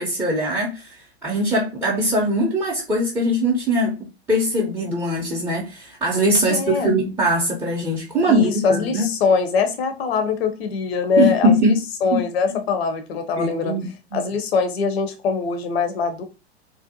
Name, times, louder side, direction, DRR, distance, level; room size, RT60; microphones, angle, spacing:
voice 1, 0.0-4.0 4.3-9.1 11.2-11.7 12.1-12.2 13.4-13.8 14.1-14.2, equal, 10° right, 0.4 m, -21 dB
voice 2, 6.5-6.9 8.3-13.8 14.1-16.2, left 5 dB, 65° left, 0.5 m, -22 dB
2.6 x 2.0 x 2.6 m
figure-of-eight pair, 100°, 33 cm